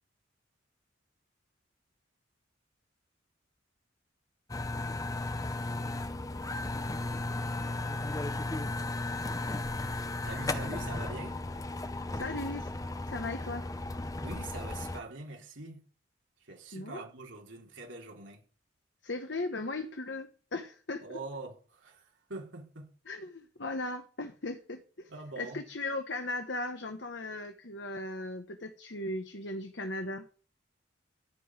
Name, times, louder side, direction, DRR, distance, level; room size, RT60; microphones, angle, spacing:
sound 1, 4.5-15.0, left 2 dB, 15° left, 0.7 m, -35 dB
voice 1, 10.2-11.4 14.2-15.8 16.4-18.4 21.0-22.9 25.1-25.6, right 2 dB, 70° right, 3.9 m, -44 dB
voice 2, 12.1-12.7 13.1-13.7 16.7-17.0 19.0-21.2 23.1-30.3, left 2 dB, 60° left, 1.3 m, -37 dB
15.0 x 5.5 x 9.7 m
head